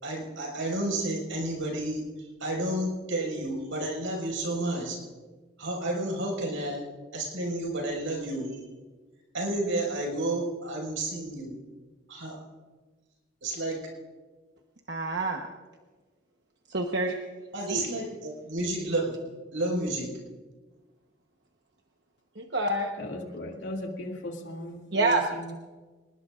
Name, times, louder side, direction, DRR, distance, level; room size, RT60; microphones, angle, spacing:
voice 1, 0.0-2.1 2.4-5.0 5.6-6.8 7.1-8.6 9.3-11.6 12.1-12.4 13.4-13.9 17.5-19.2 19.5-20.1, right 1 dB, 90° right, -1 dB, 5.4 m, -31 dB
voice 2, 14.9-15.4 16.7-17.1 17.7-17.9 22.4-22.9 24.9-25.2, right 2 dB, 60° right, 2 dB, 1.1 m, -27 dB
voice 3, 23.0-25.5, left 1 dB, 70° left, 1 dB, 2.4 m, -37 dB
26.5 x 19.5 x 2.5 m, 1.3 s
head